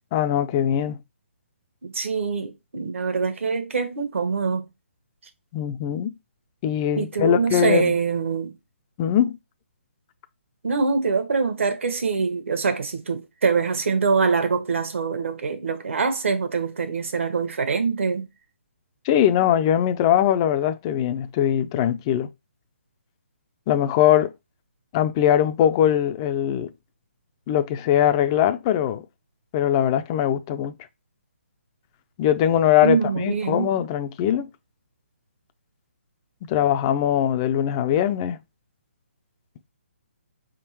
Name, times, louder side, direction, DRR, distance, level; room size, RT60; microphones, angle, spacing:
voice 1, 0.1-1.0 5.5-6.1 6.6-7.9 9.0-9.4 19.1-22.3 23.7-24.3 24.9-26.7 27.5-29.0 29.5-30.7 32.2-34.5 36.5-38.4, left 10 dB, 20° left, 0.3 m, -21 dB
voice 2, 1.8-4.7 7.0-8.5 10.6-18.3 32.8-33.7, right 5 dB, 70° right, 1.2 m, -24 dB
4.6 x 3.6 x 2.9 m
hypercardioid pair, 160°, 7 cm